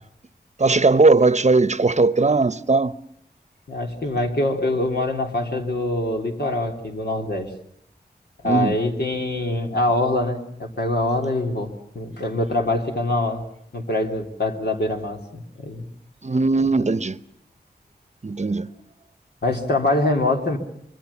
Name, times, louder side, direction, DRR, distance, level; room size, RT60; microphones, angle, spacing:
voice 1, 0.6-2.9 8.4-8.8 16.2-17.2 18.2-18.7, right 3 dB, 40° right, 0.9 m, -18 dB
voice 2, 3.7-7.5 8.4-13.4 13.7-15.8 19.4-20.6, left 2 dB, 75° left, 3.5 m, -24 dB
26.5 x 23.5 x 7.2 m
wide cardioid pair, 75°, 17 cm